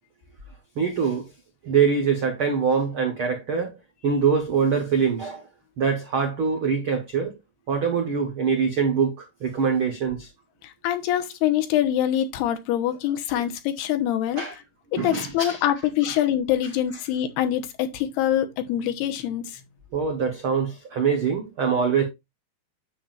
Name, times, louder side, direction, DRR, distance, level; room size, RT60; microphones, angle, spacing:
voice 1, 0.7-1.3 1.6-3.8 4.0-5.4 5.8-7.3 7.7-10.3 13.3-13.4 14.4-14.5 15.0-15.6 16.0-16.1 19.9-22.0, right 6 dB, 80° right, 1.1 m, -24 dB
voice 2, 10.6-14.4 15.0-19.6, left 11 dB, 90° left, 3.1 m, -24 dB
9.7 x 7.5 x 2.5 m
omnidirectional pair, 4.5 m